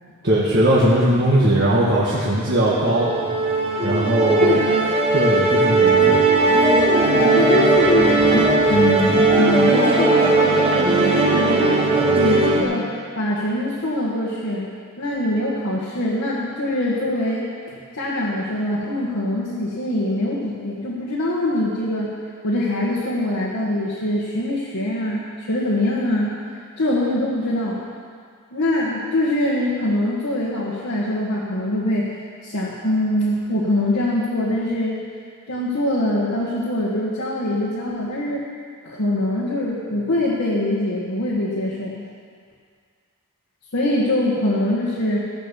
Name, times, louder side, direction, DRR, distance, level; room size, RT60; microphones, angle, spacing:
voice 1, 0.2-3.1 3.8-4.6 5.1-6.2, right 1 dB, 50° right, -8 dB, 1.7 m, -19 dB
Musical instrument, 2.5-12.6, right 2 dB, 25° right, 1.4 m, -17 dB
voice 2, 7.4-11.9 12.2-12.9 13.2-14.7 15.0-17.5 17.9-22.1 22.4-26.4 26.8-27.8 28.5-32.1 32.4-35.0 35.5-38.4 38.8-42.0 43.7-45.2, left 1 dB, 75° left, -7 dB, 1.8 m, -23 dB
16.0 x 6.6 x 7.1 m, 2.1 s
head